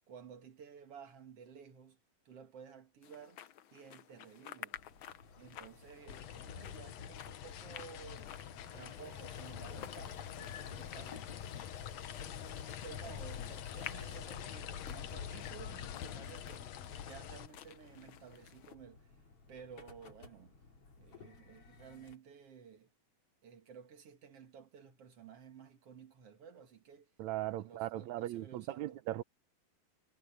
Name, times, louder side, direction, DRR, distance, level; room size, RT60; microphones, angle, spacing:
voice 1, 0.1-2.0 2.3-3.4 3.7-4.8 5.4-8.3 8.7-11.4 12.1-19.1 19.5-20.6 21.0-22.9 23.4-27.1 27.6-29.0, right 7 dB, 50° right, 3.0 m, -54 dB
sound 1, 3.0-18.7, left 10 dB, 90° left, 1.1 m, -53 dB
sound 2, 4.7-22.2, left 4 dB, 45° left, 4.2 m, -59 dB
sound 3, 6.1-17.5, left 9 dB, 65° left, 2.2 m, -45 dB
voice 2, 27.2-29.2, right 15 dB, 75° right, 2.0 m, -38 dB
omnidirectional pair, 3.5 m